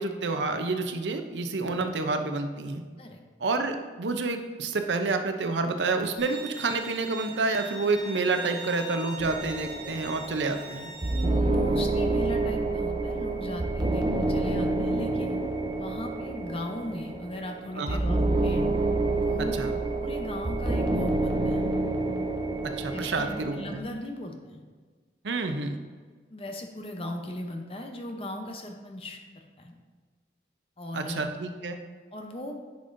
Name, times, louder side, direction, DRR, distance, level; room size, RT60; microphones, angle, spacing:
voice 1, 0.0-2.8 3.4-10.9 17.7-18.0 19.5-19.7 22.6-23.8 25.2-25.8 30.9-31.8, right 3 dB, 85° right, 7 dB, 0.6 m, -29 dB
Bowed string instrument, 6.2-11.2, right 2 dB, 5° right, 1.6 m, -41 dB
sound 1, 9.2-23.8, right 2 dB, 25° right, 0.4 m, -28 dB
voice 2, 11.1-15.4 15.8-18.7 19.1-19.6 20.0-21.6 22.9-24.6 26.3-29.2 29.6-29.7 30.8-31.3 32.1-32.6, left 1 dB, 30° left, 4 dB, 0.7 m, -37 dB
10.0 x 5.3 x 2.6 m, 1.5 s
head